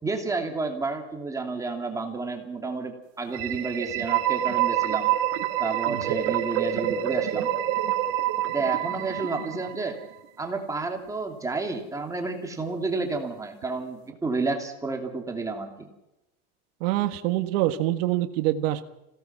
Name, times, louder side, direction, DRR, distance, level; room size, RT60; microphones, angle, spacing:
voice 1, 0.0-5.1 5.6-7.5 8.5-10.0 10.4-15.9, right 3 dB, 10° right, 3 dB, 2.7 m, -30 dB
sound 1, 3.3-10.1, right 12 dB, 65° right, 1.9 m, -27 dB
voice 2, 5.9-6.2 16.8-18.8, right 14 dB, 85° right, 7 dB, 1.7 m, -25 dB
27.0 x 17.5 x 6.0 m, 0.89 s
cardioid pair, 160°, 29 cm